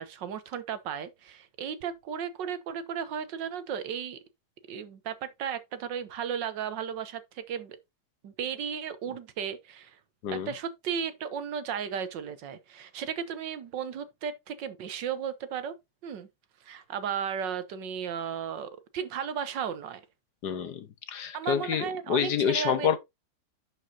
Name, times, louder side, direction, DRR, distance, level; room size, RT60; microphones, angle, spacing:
voice 1, 0.0-4.2 4.7-7.8 8.2-10.0 10.3-15.7 16.0-16.3 16.6-20.0 21.3-22.9, right 7 dB, 75° right, 1.6 m, -35 dB
voice 2, 20.4-23.0, left 8 dB, 65° left, 1.5 m, -28 dB
10.5 x 5.1 x 2.7 m
omnidirectional pair, 2.0 m